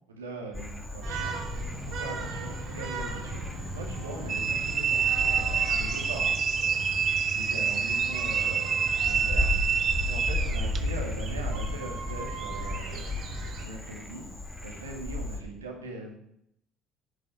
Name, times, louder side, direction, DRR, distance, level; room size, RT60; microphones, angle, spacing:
voice 1, 0.1-1.4 1.9-3.4 3.7-6.4 7.3-9.5 10.0-13.1 13.6-14.3 14.6-16.1, right 3 dB, 90° right, 1 dB, 2.4 m, -41 dB
Frog, 0.5-15.4, left 2 dB, 10° left, 2.3 m, -35 dB
sound 1, 1.0-13.6, right 4 dB, 60° right, 3.6 m, -38 dB
sound 2, 4.3-10.8, right 7 dB, 40° right, 1.1 m, -27 dB
11.5 x 6.3 x 9.2 m, 0.75 s
hypercardioid pair, 60°, 0 cm